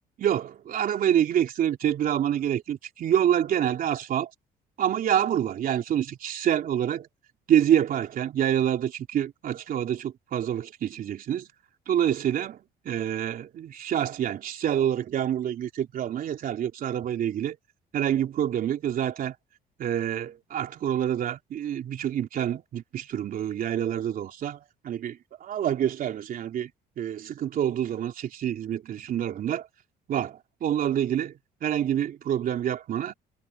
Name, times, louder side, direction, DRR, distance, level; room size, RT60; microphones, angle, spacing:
voice 1, 0.2-4.3 4.8-7.1 7.5-11.5 11.9-12.6 12.9-17.6 17.9-19.4 19.8-24.6 24.8-26.7 27.0-29.7 30.1-33.1, right 10 dB, 55° right, 3.6 m, -27 dB
cardioid pair, 110°, 17 cm